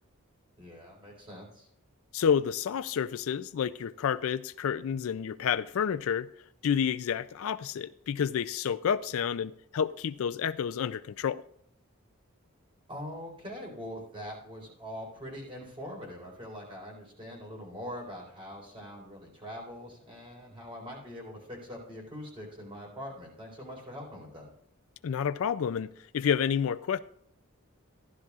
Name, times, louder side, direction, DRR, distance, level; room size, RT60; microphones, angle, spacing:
voice 1, 0.6-1.7 12.9-24.5, equal, 25° right, 4.0 m, -43 dB
voice 2, 2.1-6.3 6.6-11.4 25.0-27.0, left 7 dB, 70° left, 0.4 m, -29 dB
15.0 x 11.5 x 2.4 m
head